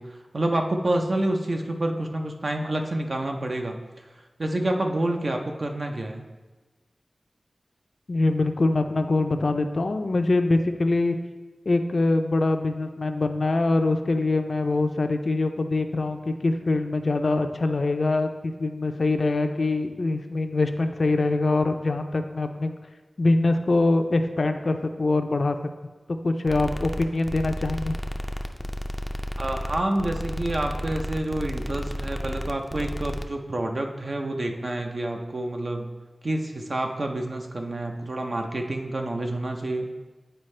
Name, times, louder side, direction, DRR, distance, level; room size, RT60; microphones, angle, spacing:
voice 1, 0.0-3.8 4.4-6.2 29.4-35.9 36.2-39.9, right 1 dB, 55° right, 3 dB, 0.7 m, -28 dB
voice 2, 8.1-11.2 11.7-22.8 23.2-25.6 26.2-28.0, left 2 dB, 65° left, 7 dB, 0.4 m, -24 dB
sound 1, 26.5-33.2, equal, 5° left, 0.4 m, -32 dB
9.0 x 4.4 x 3.2 m, 1.2 s
wide cardioid pair, 80°, 0 cm